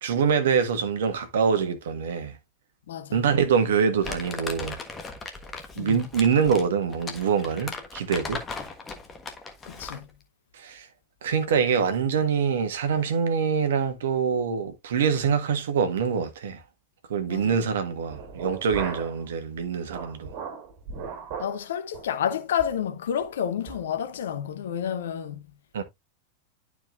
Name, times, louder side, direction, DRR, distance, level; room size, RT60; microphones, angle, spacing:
voice 1, 0.0-2.4 3.1-4.8 5.8-8.4 10.5-10.9 11.2-16.6 17.1-20.3 25.7-25.8, right 6 dB, 60° right, 1.4 m, -25 dB
voice 2, 2.9-3.2 5.7-6.0 9.7-10.1 17.2-17.6 21.4-25.4, left 9 dB, 60° left, 0.9 m, -30 dB
Crumpling crinkling, 4.0-10.1, left 4 dB, 20° left, 1.4 m, -37 dB
sound 1, 18.1-19.2 19.6-21.6 21.9-22.1 22.6-22.8 23.2-23.3 23.7-23.9, right 6 dB, 45° right, 3.1 m, -37 dB
11.5 x 4.8 x 2.5 m
figure-of-eight pair, 90°, 0 cm